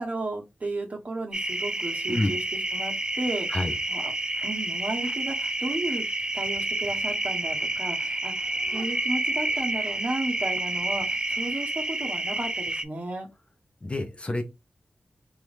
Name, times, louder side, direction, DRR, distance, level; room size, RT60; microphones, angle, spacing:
voice 1, 0.0-3.6 3.9-4.1 4.4-6.0 6.3-13.3, right 2 dB, 40° right, 1.0 m, -33 dB
sound 1, 1.3-12.8, right 2 dB, 20° right, 0.3 m, -29 dB
voice 2, 13.8-14.4, left 1 dB, 30° left, 0.7 m, -27 dB
3.0 x 2.5 x 3.3 m
cardioid pair, 60°, 4 cm